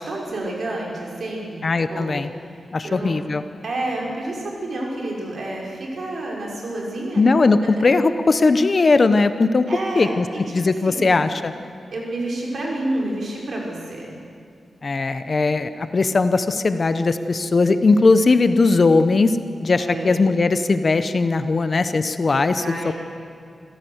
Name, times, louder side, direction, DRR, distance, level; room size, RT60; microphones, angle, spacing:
voice 1, 0.0-1.6 1.9-3.1 3.6-7.2 7.6-7.8 9.7-10.4 10.8-11.2 11.9-14.1 19.8-20.3 22.6-22.9, right 2 dB, 55° right, -2 dB, 5.4 m, -29 dB
voice 2, 1.6-2.3 2.7-3.4 7.2-9.7 10.0-10.2 10.5-11.5 14.8-19.4 19.6-22.8, left 3 dB, 35° left, 11 dB, 0.8 m, -18 dB
27.0 x 15.5 x 8.0 m, 2.3 s
wide cardioid pair, 155°, 0 cm